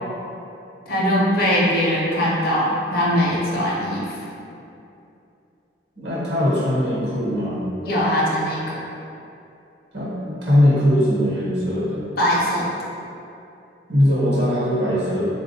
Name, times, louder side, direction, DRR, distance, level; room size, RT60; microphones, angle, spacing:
voice 1, 0.9-4.1 7.8-8.6 12.2-12.6, equal, 50° left, -6 dB, 0.6 m, -21 dB
voice 2, 6.0-7.7 9.9-12.1 13.9-15.2, equal, 65° right, -7 dB, 0.9 m, -20 dB
3.7 x 2.2 x 2.7 m, 2.7 s
head